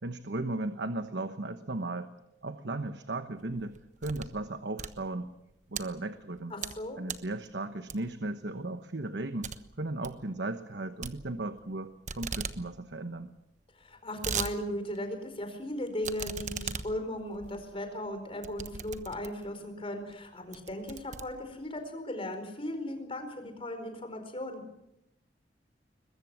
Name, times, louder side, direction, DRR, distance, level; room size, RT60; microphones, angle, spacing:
voice 1, 0.0-2.1 2.4-5.3 5.7-6.5 7.0-9.5 9.8-13.3, right 2 dB, 70° right, 9 dB, 1.2 m, -36 dB
sound 1, 3.4-4.4 4.7-5.8 6.3-6.8 7.1-7.3 7.9-8.3 8.6-8.7 9.0-9.1 9.4-9.6 9.9-10.2 11.0-11.8 12.1-12.6 12.9-13.0 13.2-13.3 13.8-14.5 15.0-15.1 16.0-19.5 20.1-20.2 20.5-21.8, right 6 dB, 45° right, 1.2 m, -38 dB
voice 2, 6.5-7.1 13.7-24.6, left 1 dB, 30° left, 7 dB, 4.5 m, -37 dB
22.0 x 22.0 x 7.4 m, 0.83 s
head